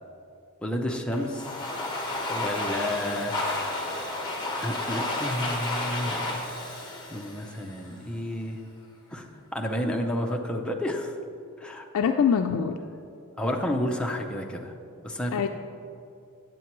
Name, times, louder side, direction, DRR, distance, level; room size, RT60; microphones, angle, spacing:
voice 1, 0.6-1.5 2.3-3.4 4.6-6.4 6.8-8.6 9.1-9.3 9.5-11.1 11.6-11.8 13.4-14.7 15.0-15.5, left 1 dB, 5° left, 0 dB, 0.5 m, -31 dB
Domestic sounds home sounds, 1.1-8.0, left 2 dB, 20° left, 1.1 m, -32 dB
voice 2, 11.9-12.8 15.3-15.5, left 7 dB, 65° left, 5 dB, 0.3 m, -23 dB
9.4 x 7.3 x 3.0 m, 2.6 s
head